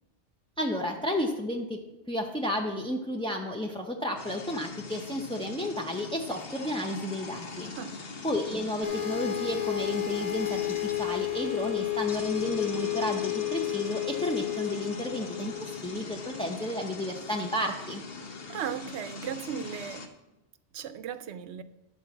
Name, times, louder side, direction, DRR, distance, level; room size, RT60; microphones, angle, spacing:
voice 1, 0.6-1.8 2.1-7.7 8.2-18.0, left 1 dB, 5° left, 0.4 m, -32 dB
sound 1, 4.2-20.1, left 4 dB, 55° left, 1.2 m, -42 dB
sound 2, 8.8-16.6, left 14 dB, 35° left, 1.1 m, -32 dB
voice 2, 18.5-20.1 20.7-21.6, right 8 dB, 75° right, 0.9 m, -36 dB
11.5 x 4.5 x 7.0 m
omnidirectional pair, 1.2 m